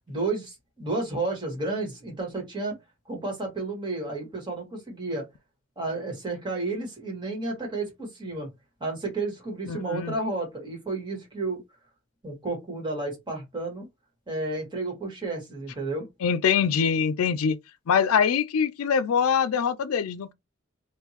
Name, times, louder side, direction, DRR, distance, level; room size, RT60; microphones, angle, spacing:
voice 1, 0.1-2.8 3.1-5.3 5.8-8.5 8.8-11.6 12.2-13.9 14.3-16.1, right 2 dB, 20° right, 1.9 m, -31 dB
voice 2, 9.7-10.1 16.2-17.6 17.9-20.3, left 7 dB, 80° left, 0.4 m, -23 dB
3.6 x 2.6 x 2.9 m
head